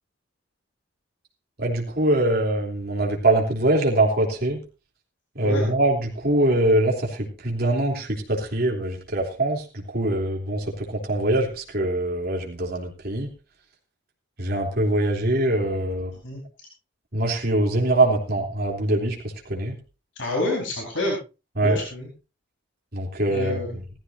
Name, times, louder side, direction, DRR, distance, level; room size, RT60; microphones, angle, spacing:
voice 1, 1.6-4.6 5.3-9.6 9.9-13.3 14.4-16.1 17.1-19.2 19.5-19.7 21.6-21.8 22.9-23.6, right 1 dB, 55° right, 0 dB, 3.2 m, -23 dB
voice 2, 20.2-21.2 21.6-22.1 23.3-23.8, left 2 dB, 70° left, -1 dB, 4.5 m, -27 dB
17.0 x 14.5 x 2.7 m, 0.31 s
head